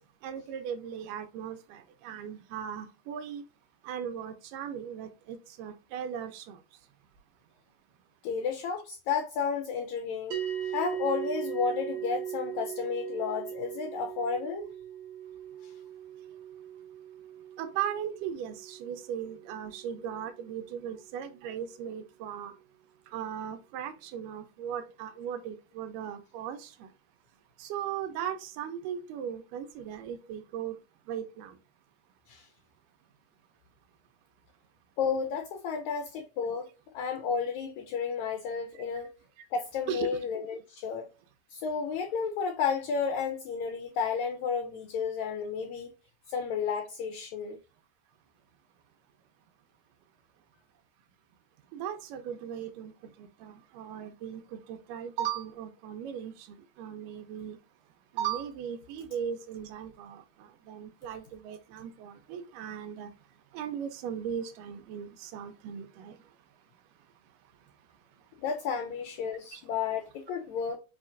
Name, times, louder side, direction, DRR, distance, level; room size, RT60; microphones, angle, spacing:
voice 1, 0.2-3.4 3.8-6.6 17.6-22.5 23.1-26.9 27.6-30.8 31.1-31.6 39.9-40.1 51.7-52.9 53.2-57.6 58.1-63.1 63.5-66.2 69.5-69.6, right 9 dB, 80° right, 2.2 m, -38 dB
voice 2, 8.2-10.4 10.6-14.7 15.6-15.7 32.3-32.5 35.0-36.7 36.9-39.1 39.5-41.1 41.5-45.9 46.3-47.6 68.4-70.8, left 6 dB, 85° left, 1.6 m, -32 dB
sound 1, 10.3-20.9, right 10 dB, 55° right, 1.6 m, -39 dB
5.5 x 2.8 x 2.5 m
omnidirectional pair, 3.9 m